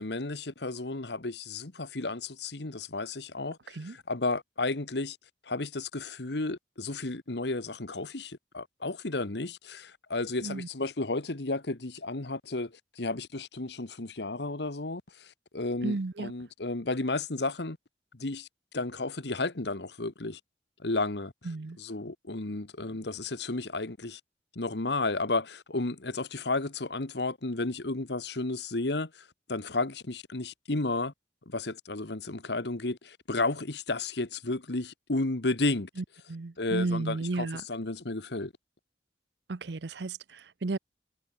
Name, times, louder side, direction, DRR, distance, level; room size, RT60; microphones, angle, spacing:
voice 1, 0.0-3.8 4.1-5.2 5.4-17.8 18.1-18.5 18.7-20.4 20.8-21.3 21.8-24.2 24.5-31.1 31.5-35.9 36.6-38.5, left 2 dB, 65° left, 1.5 m, -33 dB
voice 2, 15.8-16.3 21.4-21.8 36.0-37.6 39.5-40.8, right 3 dB, 65° right, 0.7 m, -33 dB
head